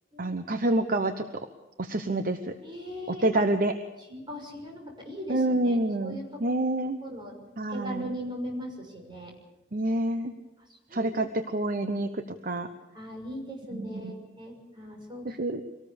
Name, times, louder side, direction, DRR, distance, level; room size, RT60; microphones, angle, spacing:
voice 1, 0.2-1.3 1.8-2.5 3.1-3.7 5.3-7.0 7.6-8.1 9.7-10.3 10.9-12.7 13.7-14.1 15.2-15.6, right 1 dB, 45° right, 8 dB, 1.0 m, -27 dB
voice 2, 2.6-3.2 4.0-6.4 7.0-7.4 7.7-9.3 10.9-11.3 12.9-15.4, equal, 25° right, 1 dB, 6.2 m, -39 dB
25.0 x 18.5 x 7.0 m, 1.0 s
head